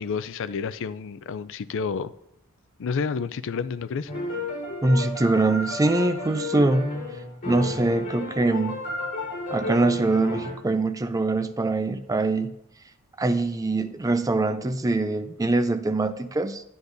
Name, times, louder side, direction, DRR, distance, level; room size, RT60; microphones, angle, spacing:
voice 1, 0.0-2.1 2.8-4.1, left 5 dB, 60° left, 0.4 m, -30 dB
sound 1, 4.1-10.5, left 2 dB, 40° left, 3.8 m, -32 dB
voice 2, 4.8-6.9 7.5-8.8 9.5-12.5 13.2-16.6, right 2 dB, 15° right, 0.4 m, -23 dB
10.5 x 9.6 x 2.6 m
head